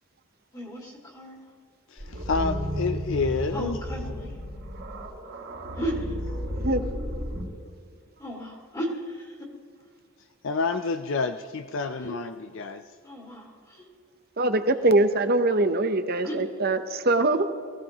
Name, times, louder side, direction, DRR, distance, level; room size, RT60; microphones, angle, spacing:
voice 1, 0.5-1.4 3.5-4.4 5.7-6.2 8.2-9.4 12.0-12.2 13.0-13.9 16.2-16.4, equal, 20° left, -2 dB, 2.2 m, -35 dB
voice 2, 1.9-3.8 10.4-12.8, left 4 dB, 60° left, 8 dB, 0.5 m, -29 dB
sound 1, 2.0-7.4, equal, 65° right, 3.8 m, -32 dB
voice 3, 14.4-17.4, right 2 dB, 45° right, 9 dB, 0.8 m, -22 dB
22.5 x 16.0 x 3.0 m, 2.1 s
head